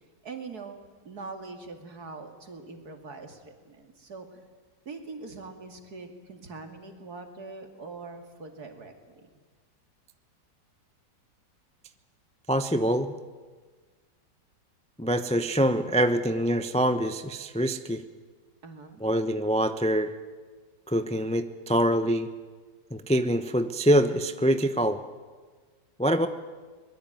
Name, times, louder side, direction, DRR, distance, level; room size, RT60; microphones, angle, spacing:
voice 1, 0.2-4.4 4.9-9.3 18.6-19.0, right 4 dB, 55° right, 6 dB, 3.0 m, -43 dB
voice 2, 12.5-13.2 15.0-18.0 19.0-20.1 20.9-22.3 22.9-25.0 26.0-26.3, equal, 5° left, 10 dB, 0.5 m, -25 dB
23.5 x 21.0 x 9.2 m, 1.4 s
omnidirectional pair, 2.0 m